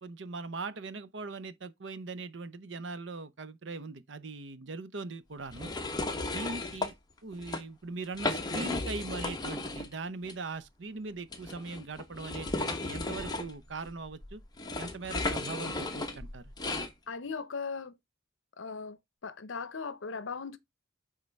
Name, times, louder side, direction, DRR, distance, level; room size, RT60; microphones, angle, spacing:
voice 1, 0.0-5.7 6.1-6.9 7.2-14.4 14.8-16.5, right 3 dB, 70° right, 0.8 m, -40 dB
sound 1, 5.5-6.9 7.3-7.6 8.0-9.9 10.2-10.3 11.3-16.9, left 2 dB, 20° left, 1.0 m, -35 dB
voice 2, 17.1-18.0 18.6-20.6, left 5 dB, 75° left, 0.7 m, -38 dB
9.4 x 3.8 x 3.3 m
head